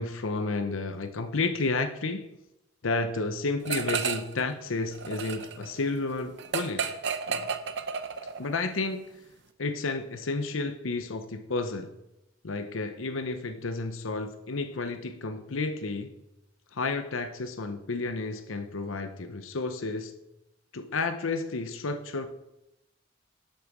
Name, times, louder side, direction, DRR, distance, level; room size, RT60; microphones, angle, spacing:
voice 1, 0.0-2.3 2.8-7.0 7.3-7.5 8.4-9.1 9.6-11.9 12.4-16.1 16.7-20.1 20.7-22.3, left 3 dB, 90° left, 0.8 m, -31 dB
sound 1, 3.7-4.4 4.7-8.5, right 6 dB, 60° right, 0.7 m, -32 dB
11.0 x 6.5 x 6.0 m
head